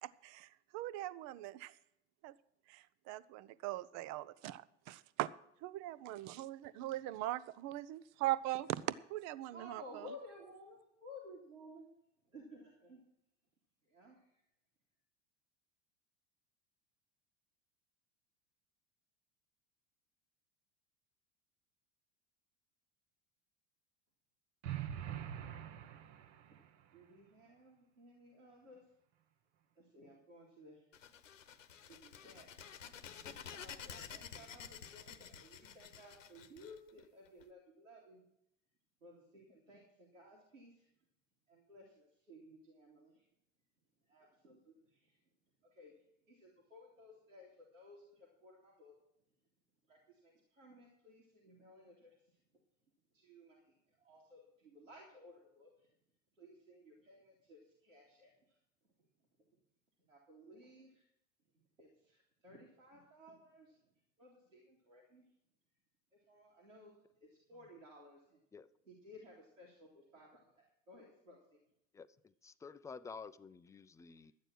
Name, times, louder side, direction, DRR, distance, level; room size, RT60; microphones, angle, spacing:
voice 1, 0.0-1.7 2.2-2.3 2.7-5.3 5.6-10.1, right 15 dB, 45° right, 17 dB, 0.7 m, -41 dB
voice 2, 9.5-11.9 12.3-13.0 13.9-14.2 26.9-28.8 29.8-30.9 31.9-32.5 33.1-38.2 39.0-40.9 41.5-43.2 44.1-45.1 45.6-45.9 46.3-48.9 49.9-52.2 53.1-53.6 54.0-55.9 56.4-58.3 60.1-61.1 61.8-63.8 64.2-65.3 66.3-66.9 67.2-68.4 68.9-71.6, left 1 dB, 90° right, -3 dB, 2.6 m, -57 dB
sound 1, 24.6-26.7, right 10 dB, 60° right, 1.1 m, -44 dB
sound 2, 30.9-37.4, left 7 dB, 85° left, 1.0 m, -51 dB
voice 3, 71.9-74.3, left 5 dB, 10° left, 12 dB, 0.4 m, -51 dB
12.5 x 9.0 x 6.3 m, 0.79 s
hypercardioid pair, 80°, 38 cm